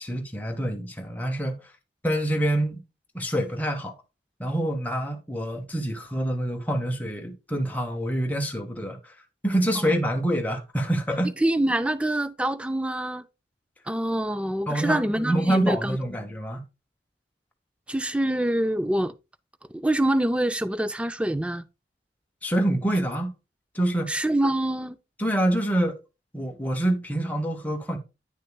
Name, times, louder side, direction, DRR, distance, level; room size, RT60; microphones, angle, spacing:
voice 1, 0.0-1.6 2.0-2.8 3.1-3.9 4.4-9.1 9.4-11.3 14.7-16.6 22.4-23.3 23.7-24.2 25.2-26.0 26.3-28.0, right 1 dB, 10° left, 1.0 m, -26 dB
voice 2, 11.4-13.2 13.9-16.0 17.9-19.1 19.7-21.6 24.1-25.0, right 1 dB, 5° right, 0.3 m, -25 dB
9.2 x 6.4 x 2.2 m
head